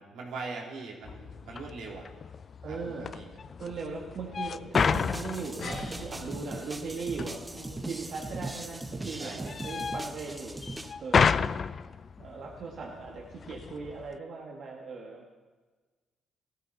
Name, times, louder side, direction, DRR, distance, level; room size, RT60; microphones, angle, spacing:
voice 1, 0.0-2.1 2.7-3.4 9.2-9.6, right 4 dB, 80° right, -1 dB, 3.1 m, -41 dB
sound 1, 1.0-14.2, left 6 dB, 45° left, 0.4 m, -33 dB
voice 2, 2.6-3.1 3.6-10.6 11.0-11.5 12.2-15.3, right 4 dB, 60° right, -2 dB, 1.9 m, -39 dB
sound 2, 4.7-10.9, right 2 dB, 15° right, 0.9 m, -40 dB
sound 3, 5.6-10.5, left 2 dB, 70° left, 3.4 m, -46 dB
17.5 x 13.5 x 4.2 m, 1.3 s
cardioid pair, 90°, 0 cm